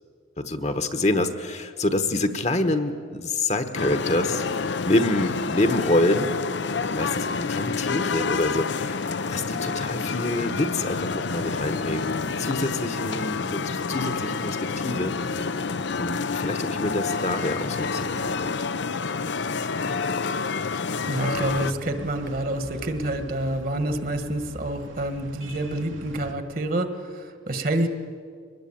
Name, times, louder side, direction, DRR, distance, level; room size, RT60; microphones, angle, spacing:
voice 1, 0.4-6.3 6.9-9.0 9.3-15.5 15.9-18.5, left 2 dB, 35° left, 8 dB, 1.2 m, -27 dB
sound 1, 3.7-21.7, left 4 dB, 60° left, 0.6 m, -28 dB
voice 2, 21.1-27.9, right 1 dB, 45° right, 8 dB, 1.6 m, -28 dB
sound 2, 21.3-26.3, right 1 dB, 80° right, 2.2 m, -42 dB
23.5 x 20.0 x 8.7 m, 2.1 s
head